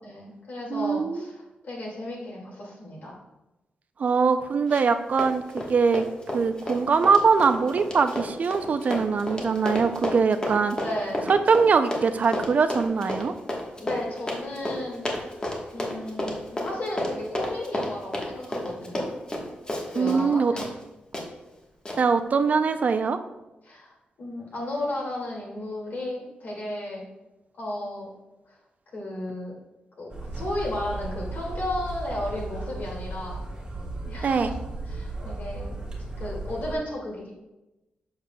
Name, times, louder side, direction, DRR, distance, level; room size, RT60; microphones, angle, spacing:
voice 1, 0.0-3.2 10.8-11.2 13.8-15.4 15.7-19.1 19.9-20.7 23.6-27.0 27.6-28.1 28.5-28.6 28.9-29.5 30.0-33.4 34.0-34.6 34.9-35.7 36.2-37.3, left 1 dB, 70° left, -3 dB, 2.1 m, -34 dB
voice 2, 0.7-1.3 4.0-6.0 6.3-10.8 11.3-13.3 20.0-20.5 22.0-23.2 34.2-34.5, right 5 dB, 50° right, 9 dB, 0.4 m, -22 dB
Run, 4.7-4.9 5.2-20.3 20.6-20.7 21.1-21.3 21.9-22.0, left 1 dB, 25° left, 1.2 m, -31 dB
sound 1, 30.1-36.8, right 2 dB, 25° right, 1.5 m, -35 dB
7.5 x 6.6 x 2.2 m, 1.0 s
wide cardioid pair, 105°, 3 cm